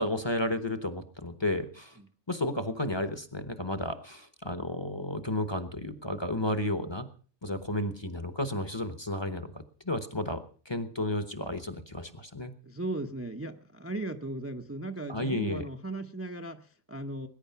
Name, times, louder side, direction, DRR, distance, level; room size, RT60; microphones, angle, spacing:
voice 1, 0.0-2.0 2.3-7.1 7.4-12.5 15.1-15.7, left 1 dB, 20° left, 10 dB, 1.0 m, -32 dB
voice 2, 12.6-17.3, right 2 dB, 15° right, 5 dB, 0.7 m, -37 dB
20.0 x 10.0 x 5.7 m, 0.42 s
omnidirectional pair, 1.3 m